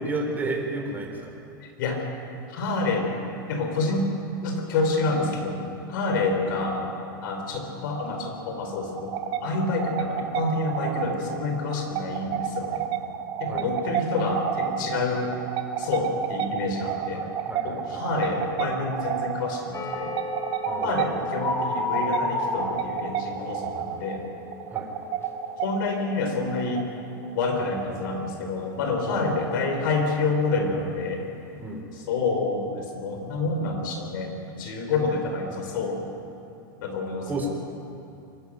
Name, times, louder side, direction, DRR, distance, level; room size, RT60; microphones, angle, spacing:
voice 1, 0.0-1.3 13.5-13.7 17.1-18.1 20.7-21.1 24.7-24.9 29.0-29.3 31.6-31.8 37.3-37.5, right 2 dB, 15° right, 1 dB, 3.9 m, -32 dB
voice 2, 1.6-2.1 2.5-3.1 3.5-4.0 4.4-5.6 5.9-6.9 7.2-12.8 13.4-15.4 15.8-17.2 17.6-20.1 20.8-24.2 25.6-26.9 27.3-31.2 31.9-34.3 34.6-36.0 36.8-37.5, left 3 dB, 70° left, 3 dB, 4.8 m, -28 dB
sound 1, 8.8-28.2, right 9 dB, 45° right, 1.3 m, -31 dB
sound 2, 19.7-25.5 25.8-26.2 26.6-26.8, left 3 dB, 20° left, 1.9 m, -33 dB
23.5 x 13.0 x 9.3 m, 2.7 s
hypercardioid pair, 115°, 11 cm